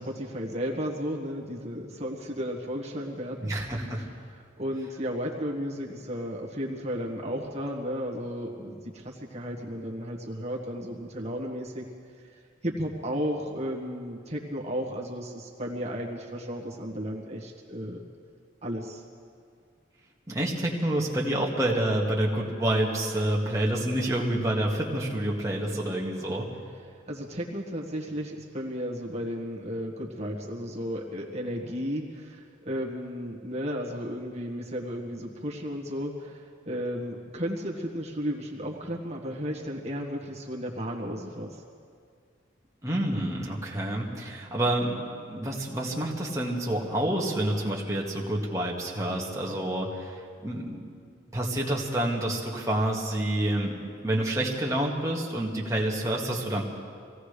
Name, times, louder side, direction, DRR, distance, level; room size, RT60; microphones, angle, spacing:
voice 1, 0.0-3.5 4.3-11.8 12.2-12.3 12.6-18.0 18.6-19.0 27.1-41.6, equal, 35° right, -2 dB, 1.6 m, -34 dB
voice 2, 3.4-4.1 20.3-26.5 42.8-50.9 51.3-53.7 54.0-56.6, right 1 dB, 15° right, -3 dB, 1.8 m, -28 dB
25.0 x 17.5 x 3.4 m, 2.2 s
head